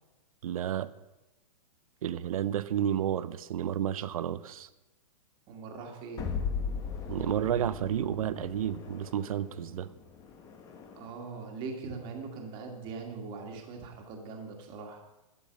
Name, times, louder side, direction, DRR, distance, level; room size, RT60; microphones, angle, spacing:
voice 1, 0.4-0.9 2.0-4.7 7.1-9.9, right 10 dB, 70° right, 16 dB, 0.8 m, -31 dB
voice 2, 5.5-6.3 10.9-15.0, right 4 dB, 25° right, 3 dB, 2.0 m, -41 dB
sound 1, 6.2-11.3, left 6 dB, 15° left, 1.1 m, -38 dB
12.5 x 12.0 x 5.3 m, 1.0 s
hypercardioid pair, 165°, 19 cm